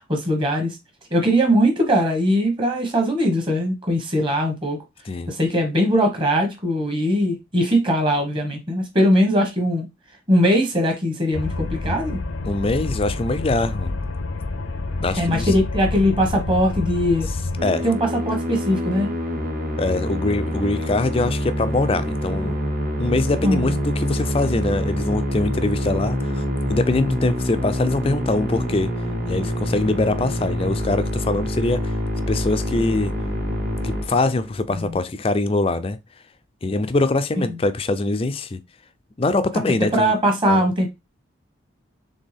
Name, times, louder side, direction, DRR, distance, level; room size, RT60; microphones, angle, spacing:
voice 1, 0.1-0.8 1.1-4.8 5.3-9.9 10.3-12.2 15.1-17.3 17.8-19.1 23.4-23.8 34.7-35.0 39.9-40.9, equal, 25° right, 1.2 m, -20 dB
sound 1, 11.3-17.6, left 2 dB, 75° left, 0.6 m, -28 dB
voice 2, 12.4-14.0 15.0-15.5 17.6-17.9 19.8-22.6 23.0-28.9 29.3-31.9 32.3-33.1 33.8-36.0 36.6-38.6 39.2-40.1 40.5-40.6, left 2 dB, 25° left, 0.4 m, -23 dB
Musical instrument, 17.6-34.7, equal, 45° right, 1.5 m, -26 dB
4.3 x 3.4 x 3.4 m
head